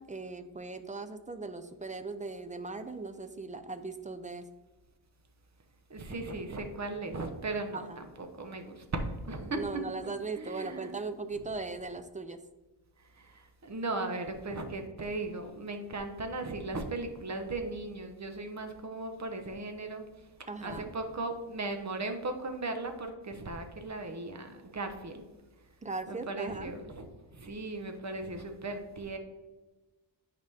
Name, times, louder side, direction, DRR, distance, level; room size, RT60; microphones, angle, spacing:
voice 1, 0.0-4.4 7.7-8.0 9.5-12.4 20.5-20.9 25.8-26.7, right 3 dB, 15° right, 9 dB, 0.4 m, -39 dB
voice 2, 5.9-10.9 13.1-20.0 20.6-25.2 26.1-27.1 27.3-29.2, right 2 dB, 35° right, 6 dB, 1.0 m, -37 dB
9.0 x 5.1 x 3.5 m, 1.1 s
wide cardioid pair, 120°, 45 cm